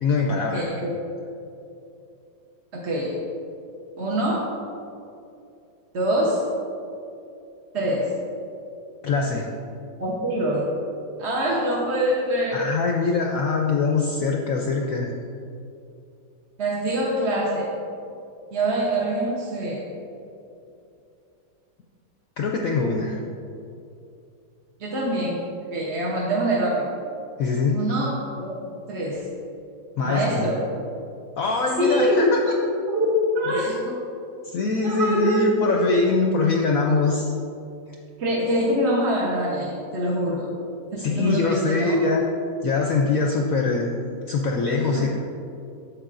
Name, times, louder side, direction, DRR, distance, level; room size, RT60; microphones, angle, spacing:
voice 1, 0.0-0.7 9.0-9.5 12.5-15.1 22.4-23.2 27.4-27.8 30.0-30.5 31.4-32.5 33.5-33.9 34.4-37.3 41.0-42.2 42.6-43.9 44.3-45.1, left 4 dB, 70° left, 1 dB, 0.8 m, -23 dB
voice 2, 0.5-0.9 2.7-3.2 4.0-4.5 5.9-6.5 7.7-8.1 10.0-10.7 11.2-12.7 16.6-17.7 18.5-19.9 24.8-26.9 27.7-28.6 28.9-29.3 30.0-30.7 31.4-32.2 32.8-33.1 33.3-33.8 34.8-35.8 38.2-40.5 40.9-42.0 45.0-45.1, right 1 dB, 45° right, -5 dB, 1.0 m, -24 dB
9.5 x 7.1 x 2.5 m, 2.6 s
omnidirectional pair, 1.9 m